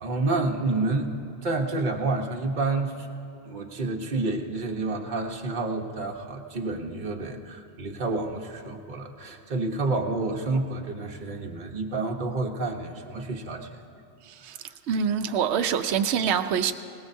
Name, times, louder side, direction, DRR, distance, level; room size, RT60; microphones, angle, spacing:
voice 1, 0.0-3.1 3.4-13.7 14.4-14.6, right 3 dB, 45° right, 1 dB, 1.2 m, -29 dB
voice 2, 14.2-14.6 14.9-16.7, right 7 dB, 80° right, 7 dB, 0.9 m, -25 dB
21.5 x 19.5 x 2.7 m, 2.4 s
omnidirectional pair, 1.1 m